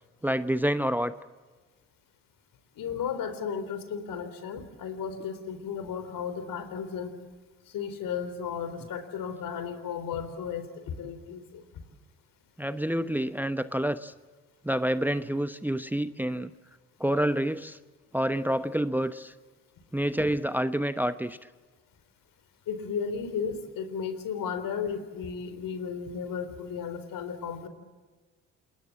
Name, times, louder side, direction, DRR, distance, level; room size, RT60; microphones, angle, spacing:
voice 1, 0.2-1.1 12.6-14.1 14.6-16.5 17.0-17.8 18.1-19.3 19.9-21.4, right 1 dB, 5° right, 12 dB, 1.0 m, -28 dB
voice 2, 2.8-7.1 7.7-11.6 22.7-27.7, left 6 dB, 60° left, 11 dB, 3.9 m, -34 dB
28.0 x 21.5 x 7.5 m, 1.4 s
hypercardioid pair, 60°, 37 cm